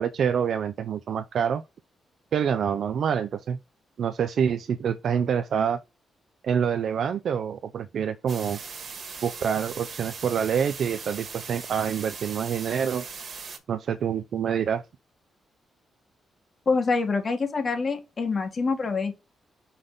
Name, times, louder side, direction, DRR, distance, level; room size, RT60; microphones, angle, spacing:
voice 1, 0.0-1.6 2.3-3.6 4.0-5.8 6.4-8.6 9.2-13.0 13.7-14.8, right 7 dB, 70° right, 0.5 m, -26 dB
sound 1, 8.3-13.6, right 5 dB, 55° right, 1.6 m, -39 dB
voice 2, 16.7-19.1, left 4 dB, 45° left, 1.9 m, -26 dB
5.8 x 3.7 x 4.9 m
cardioid pair, 85°, 0 cm